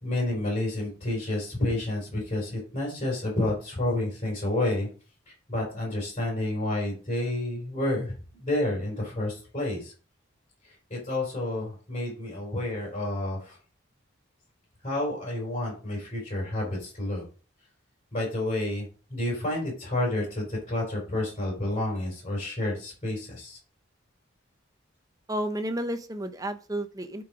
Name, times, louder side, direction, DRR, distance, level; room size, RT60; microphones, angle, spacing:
voice 1, 0.0-4.9 5.5-8.1 8.4-9.9 10.9-13.6 14.8-17.2 18.1-23.6, left 1 dB, 30° left, -3 dB, 4.5 m, -30 dB
voice 2, 25.3-27.2, right 1 dB, 20° right, 8 dB, 0.8 m, -31 dB
9.0 x 4.8 x 5.0 m, 0.37 s
head